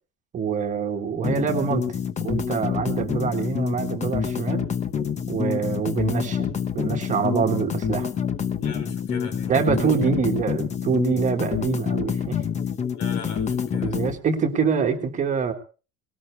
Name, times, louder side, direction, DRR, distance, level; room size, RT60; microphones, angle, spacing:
voice 1, 0.3-1.8 2.2-4.7 5.3-8.1 9.5-12.4 13.8-15.5, right 6 dB, 25° right, 4 dB, 1.6 m, -25 dB
sound 1, 1.2-14.2, left 7 dB, 25° left, 1.0 m, -27 dB
voice 2, 8.6-10.2 12.9-14.1, left 5 dB, 90° left, 7 dB, 4.2 m, -39 dB
19.5 x 18.5 x 3.3 m, 0.36 s
cardioid pair, 175°, 29 cm